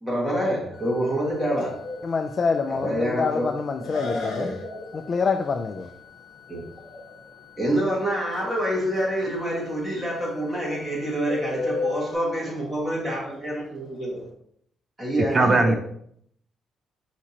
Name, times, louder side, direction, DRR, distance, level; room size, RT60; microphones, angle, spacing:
voice 1, 0.0-1.9 2.7-3.5 3.9-5.0 6.5-6.6 6.9-7.0 7.6-14.3 15.0-15.8, equal, 15° right, -5 dB, 1.8 m, -27 dB
sound 1, 0.7-12.2, left 10 dB, 10° left, 1.8 m, -51 dB
Bird, 1.3-14.3, left 3 dB, 90° left, 1.0 m, -36 dB
voice 2, 2.0-4.5 5.1-5.9, left 5 dB, 45° left, 6 dB, 0.3 m, -26 dB
voice 3, 15.2-15.7, right 3 dB, 35° right, 7 dB, 0.4 m, -19 dB
5.8 x 2.9 x 2.8 m, 0.67 s
cardioid pair, 90°, 0 cm